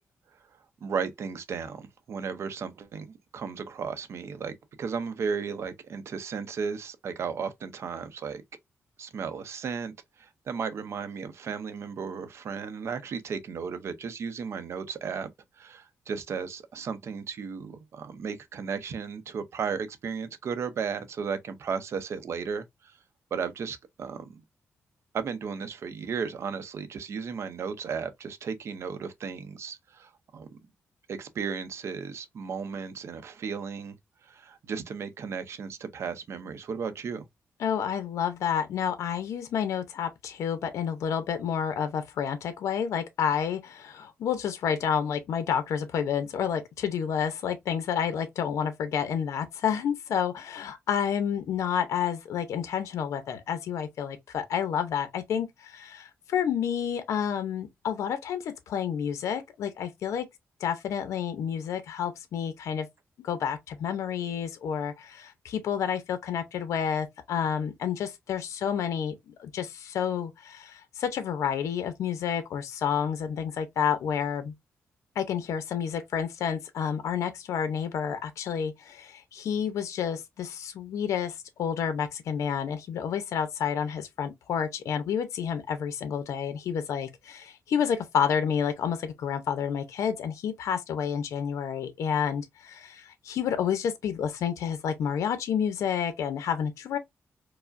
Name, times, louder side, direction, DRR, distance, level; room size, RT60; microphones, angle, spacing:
voice 1, 0.8-8.4 9.0-15.3 15.6-23.0 23.3-24.3 25.1-30.6 31.1-34.0 34.2-37.3, right 6 dB, 65° right, 0.6 m, -35 dB
voice 2, 37.6-60.3 60.6-62.9 63.2-74.5 75.2-97.0, left 8 dB, 90° left, 0.6 m, -30 dB
4.6 x 2.1 x 2.5 m
cardioid pair, 105°, 5 cm